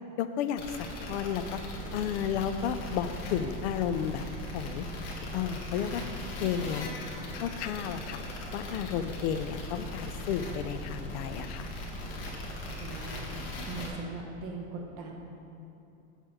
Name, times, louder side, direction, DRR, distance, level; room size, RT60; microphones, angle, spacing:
voice 1, 0.2-0.7 1.0-1.6 1.9-4.3 4.5-4.9 5.3-6.0 6.4-6.9 7.3-8.2 8.5-11.7, left 8 dB, 90° left, 9 dB, 0.5 m, -32 dB
sound 1, 0.6-13.9, left 1 dB, 65° left, 1.7 m, -39 dB
voice 2, 12.8-13.2 13.6-15.1, right 4 dB, 45° right, 0 dB, 1.0 m, -40 dB
7.5 x 6.5 x 4.9 m, 2.9 s
supercardioid pair, 180°, 33 cm